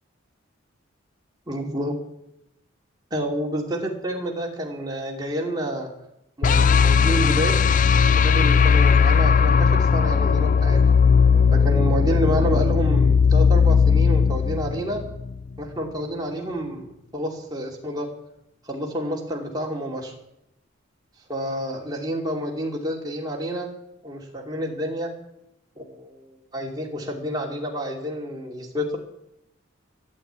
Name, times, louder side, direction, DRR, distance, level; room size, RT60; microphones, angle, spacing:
voice 1, 1.5-2.0 3.1-5.9 6.4-7.6 8.1-10.9 11.5-15.0 15.6-18.1 18.6-20.1 21.3-23.7 24.0-25.1 25.8-29.0, equal, 20° right, -1 dB, 2.6 m, -29 dB
sound 1, 6.4-15.5, left 6 dB, 40° left, 0.4 m, -18 dB
13.5 x 8.5 x 9.2 m, 0.84 s
head